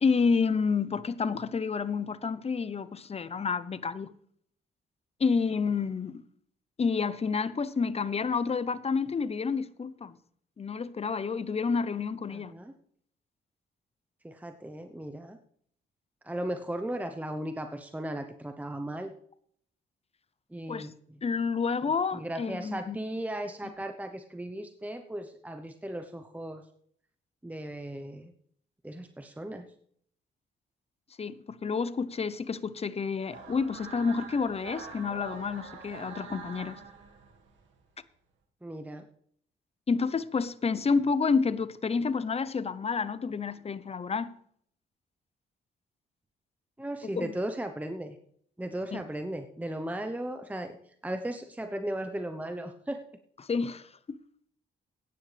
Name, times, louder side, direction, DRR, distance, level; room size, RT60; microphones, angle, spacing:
voice 1, 0.0-4.1 5.2-6.2 6.8-10.2 10.6-12.5 20.7-20.9 21.2-23.0 31.2-36.8 39.9-44.3 47.2-47.3 48.9-49.0 53.4-54.2, left 5 dB, 30° left, 0.8 m, -29 dB
voice 2, 12.3-12.7 14.2-15.4 16.2-19.1 20.5-20.9 21.8-26.6 27.4-28.3 28.8-29.7 38.6-39.0 46.8-48.2 48.6-53.0, right 1 dB, 10° right, 0.9 m, -36 dB
sound 1, 33.3-37.7, right 5 dB, 90° right, 1.8 m, -45 dB
16.0 x 9.9 x 3.4 m
cardioid pair, 80°, 19 cm